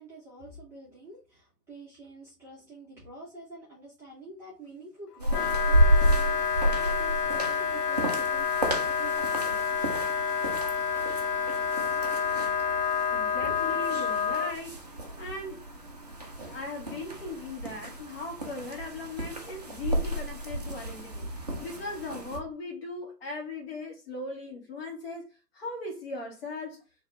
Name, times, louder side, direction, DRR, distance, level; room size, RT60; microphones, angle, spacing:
voice 1, 0.0-9.8 13.4-13.7, right 1 dB, 5° right, 0.8 m, -47 dB
sound 1, 5.2-22.4, equal, 30° right, 0.4 m, -31 dB
Wind instrument woodwind instrument, 5.3-14.5, left 6 dB, 75° left, 0.6 m, -28 dB
voice 2, 13.1-14.8 15.2-15.7 16.4-25.3 25.5-26.8, left 2 dB, 40° left, 1.6 m, -38 dB
4.0 x 2.8 x 3.2 m
figure-of-eight pair, 135°, 48 cm